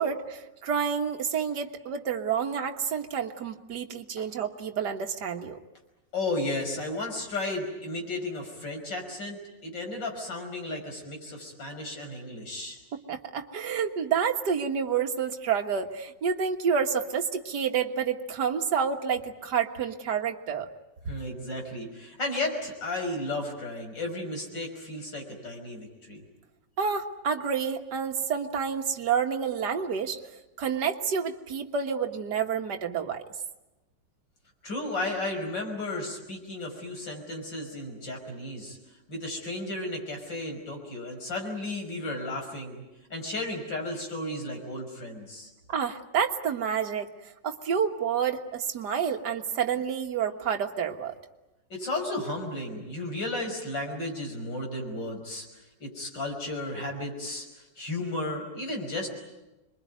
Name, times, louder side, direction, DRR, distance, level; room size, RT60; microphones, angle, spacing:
voice 1, 0.0-5.6 12.9-20.7 26.8-30.2 30.6-33.2 45.7-47.1 47.4-51.1, right 7 dB, 70° right, 4 dB, 2.0 m, -29 dB
voice 2, 6.1-12.8 21.1-26.2 34.6-38.8 39.1-42.8 43.1-45.5 51.7-59.1, left 2 dB, 85° left, 2 dB, 6.3 m, -34 dB
26.5 x 22.5 x 9.4 m, 1.0 s
omnidirectional pair, 1.9 m